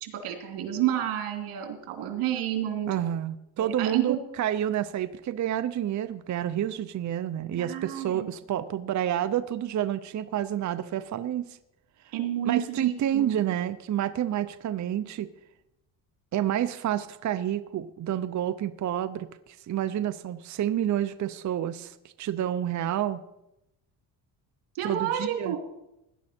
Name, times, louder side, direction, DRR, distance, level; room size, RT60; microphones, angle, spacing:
voice 1, 0.0-2.9 3.6-4.2 7.6-8.3 12.1-13.3 24.7-25.6, right 11 dB, 85° right, 3 dB, 2.8 m, -30 dB
voice 2, 2.9-11.6 12.0-12.1 12.5-15.3 16.3-23.2 24.8-25.6, right 11 dB, 35° right, 12 dB, 0.6 m, -29 dB
17.5 x 11.0 x 4.3 m, 0.88 s
cardioid pair, 120°, 49 cm